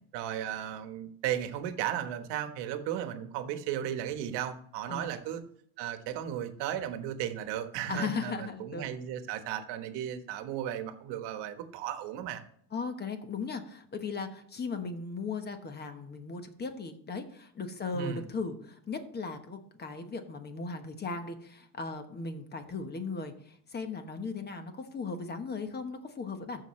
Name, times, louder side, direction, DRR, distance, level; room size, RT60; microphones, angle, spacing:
voice 1, 0.1-5.4 5.8-12.4 17.9-18.3, right 10 dB, 60° right, 8 dB, 1.3 m, -35 dB
voice 2, 7.9-8.9 12.7-26.6, left 4 dB, 20° left, 7 dB, 1.1 m, -37 dB
14.5 x 5.8 x 3.2 m, 0.64 s
cardioid pair, 140°, 46 cm